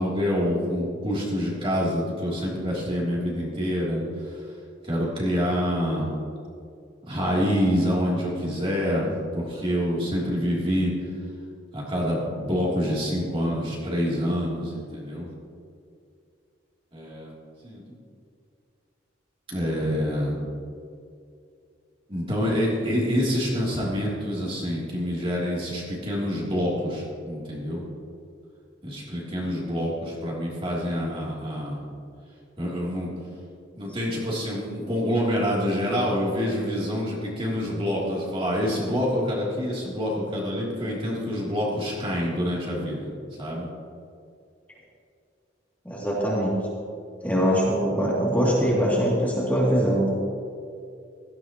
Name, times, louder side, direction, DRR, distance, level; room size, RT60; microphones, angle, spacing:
voice 1, 0.0-4.0 4.9-6.1 7.1-10.9 11.7-15.3 16.9-17.3 17.6-17.8 19.5-20.4 22.1-27.8 28.8-31.8 32.6-33.1 33.8-43.1 43.4-43.7, equal, 30° right, -5 dB, 3.1 m, -26 dB
voice 2, 45.8-46.5 47.2-50.1, equal, 10° left, -6 dB, 2.7 m, -22 dB
17.0 x 14.5 x 3.0 m, 2.4 s
head